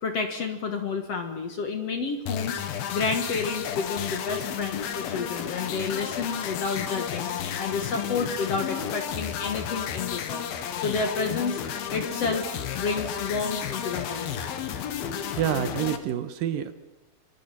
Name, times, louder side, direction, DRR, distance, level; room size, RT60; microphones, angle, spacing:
voice 1, 0.0-10.5 10.8-11.6 11.9-12.5 12.7-14.4, left 4 dB, 50° left, 6 dB, 2.2 m, -30 dB
sound 1, 2.3-16.0, left 8 dB, 75° left, 3.2 m, -32 dB
voice 2, 15.3-16.7, right 10 dB, 75° right, 10 dB, 2.8 m, -27 dB
26.5 x 24.0 x 5.8 m, 1.0 s
omnidirectional pair, 4.3 m